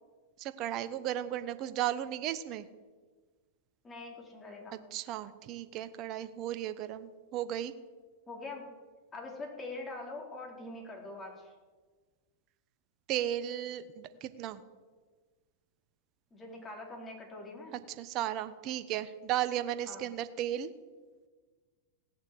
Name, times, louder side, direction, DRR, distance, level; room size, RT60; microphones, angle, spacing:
voice 1, 0.4-2.7 4.9-7.7 13.1-14.6 18.0-20.7, right 12 dB, 45° right, 12 dB, 1.0 m, -35 dB
voice 2, 3.8-4.8 8.3-8.6 9.1-11.5 16.3-17.8 19.9-20.0, left 2 dB, 20° left, 0 dB, 4.3 m, -43 dB
17.5 x 7.2 x 7.8 m, 1.4 s
hypercardioid pair, 100°, 0 cm